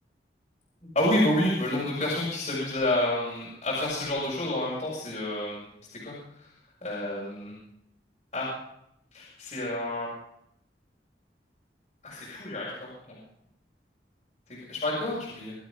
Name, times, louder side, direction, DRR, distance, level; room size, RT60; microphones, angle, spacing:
voice 1, 1.0-5.6 6.0-6.5 6.8-7.5 8.3-8.5 9.1-10.1 12.0-13.2 14.5-15.6, left 1 dB, 35° left, -6 dB, 6.8 m, -29 dB
25.5 x 8.8 x 5.3 m, 0.75 s
head